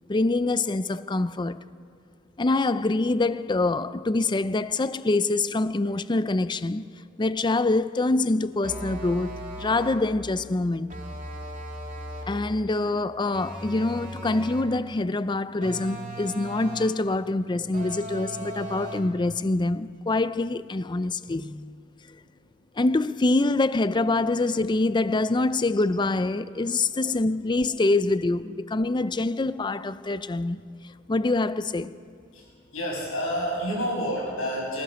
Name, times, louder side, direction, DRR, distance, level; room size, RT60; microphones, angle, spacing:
voice 1, 0.1-1.6 2.4-6.8 7.2-10.9 12.3-21.7 22.8-30.6 31.1-31.9, left 2 dB, 20° left, 0.5 m, -25 dB
sound 1, 8.6-10.1 10.9-12.4 13.3-14.8 15.6-17.0 17.7-19.2, right 1 dB, 40° right, 2.7 m, -38 dB
voice 2, 32.3-34.8, equal, 80° left, 7.7 m, -30 dB
25.0 x 15.0 x 6.9 m
head